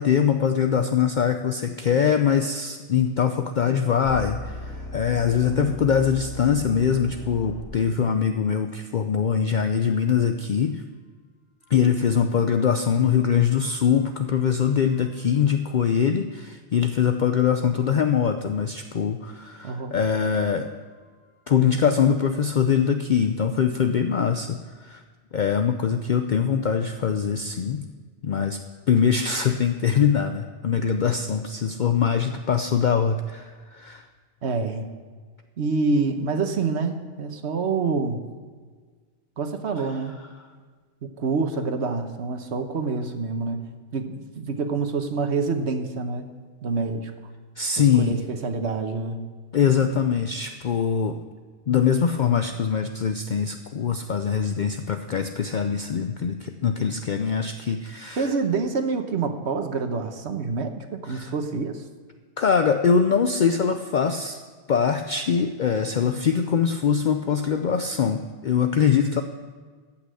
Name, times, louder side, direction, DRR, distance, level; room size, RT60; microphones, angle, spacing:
voice 1, 0.0-10.8 11.7-20.7 21.5-25.0 25.3-27.9 28.2-28.6 28.9-34.1 47.6-48.2 49.5-51.2 51.7-58.3 61.1-61.3 62.4-64.4 64.7-69.2, left 7 dB, 50° left, 7 dB, 0.6 m, -23 dB
sound 1, 4.0-8.1 13.6-15.1 15.4-15.5 21.6-21.7, left 2 dB, 90° left, 1.8 m, -38 dB
voice 2, 19.6-19.9 34.4-34.8 35.6-38.2 39.4-40.2 41.2-43.6 43.9-46.3 46.6-47.1 47.8-49.2 58.2-61.8, right 4 dB, 70° right, 7 dB, 1.3 m, -27 dB
14.5 x 5.9 x 7.7 m, 1.5 s
omnidirectional pair, 1.2 m